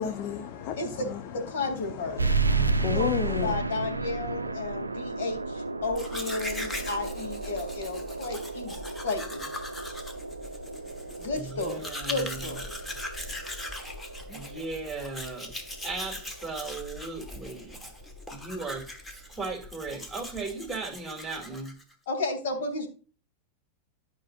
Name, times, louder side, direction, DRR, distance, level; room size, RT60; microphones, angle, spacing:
voice 1, 0.0-3.6, left 8 dB, 40° left, 0.9 m, -33 dB
voice 2, 0.8-1.1 1.3-2.2 2.9-8.7 9.0-9.4 11.2-12.8 22.1-22.9, left 3 dB, 60° left, 2.9 m, -33 dB
sound 1, 2.2-17.3, right 3 dB, 80° right, 0.5 m, -33 dB
Domestic sounds home sounds, 5.8-21.9, left 1 dB, 10° left, 1.3 m, -40 dB
voice 3, 11.3-12.4 14.3-15.5 15.8-17.8 18.3-18.9 19.1-21.7, right 3 dB, 10° right, 2.5 m, -37 dB
12.0 x 5.6 x 2.5 m
figure-of-eight pair, 90°, 0 cm